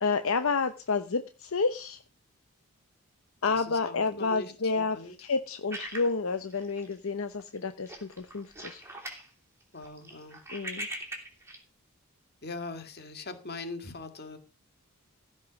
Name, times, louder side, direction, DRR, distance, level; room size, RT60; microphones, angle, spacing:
voice 1, 0.0-2.0 3.4-8.8 10.5-10.9, left 4 dB, 65° left, 9 dB, 0.8 m, -30 dB
voice 2, 3.5-5.1 9.7-10.4 12.4-14.4, left 3 dB, 50° left, 7 dB, 2.1 m, -41 dB
sound 1, 5.7-7.1 7.4-7.6 7.9-9.3 9.6-11.6, right 1 dB, 10° right, 3.0 m, -41 dB
15.5 x 5.4 x 6.3 m, 0.33 s
head